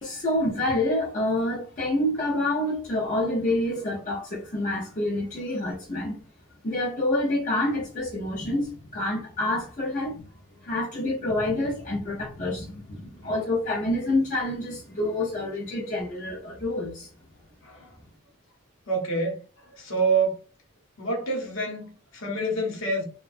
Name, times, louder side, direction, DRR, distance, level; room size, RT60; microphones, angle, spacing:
voice 1, 0.0-6.2 6.6-10.2 10.6-17.1, left 1 dB, 35° left, 0.5 m, -27 dB
voice 2, 18.9-19.4 19.8-20.4 21.0-23.0, right 3 dB, 70° left, 0.9 m, -27 dB
2.7 x 2.2 x 2.4 m
head